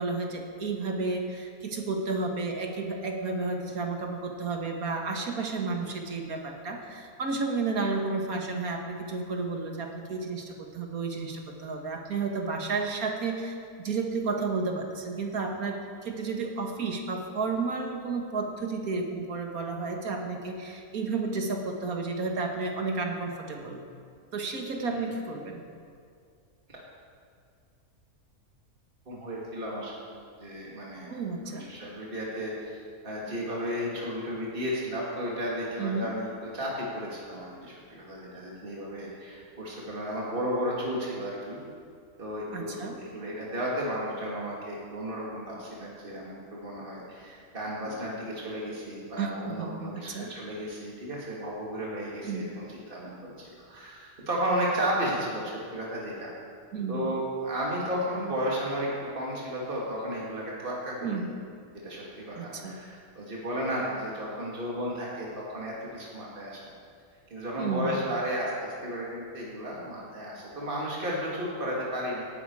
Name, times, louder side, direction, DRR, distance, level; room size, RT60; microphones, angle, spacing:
voice 1, 0.0-23.8 24.3-25.6 31.1-31.7 35.8-36.1 42.5-43.0 49.2-50.3 52.2-52.5 56.7-57.1 61.0-61.3 62.3-62.8 67.6-68.0, right 3 dB, 75° right, 2 dB, 2.1 m, -32 dB
voice 2, 29.1-30.0 30.4-31.2 31.4-36.3 36.5-41.6 42.2-56.3 56.9-61.2 61.8-66.6 67.3-72.2, equal, 35° right, -5 dB, 2.8 m, -33 dB
18.0 x 12.0 x 4.9 m, 2.2 s
omnidirectional pair, 1.5 m